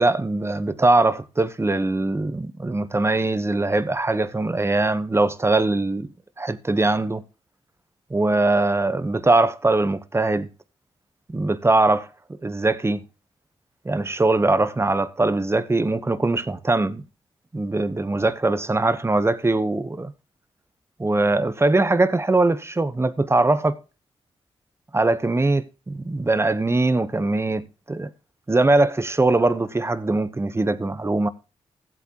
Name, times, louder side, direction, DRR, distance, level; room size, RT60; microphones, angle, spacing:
voice 1, 0.0-6.1 6.4-7.2 8.1-10.5 11.3-12.1 12.4-13.0 13.8-17.0 17.5-20.1 21.0-23.8 24.9-28.1 28.5-31.3, right 2 dB, 25° right, 1.0 m, -21 dB
15.0 x 8.2 x 3.0 m
cardioid pair, 55°, 11 cm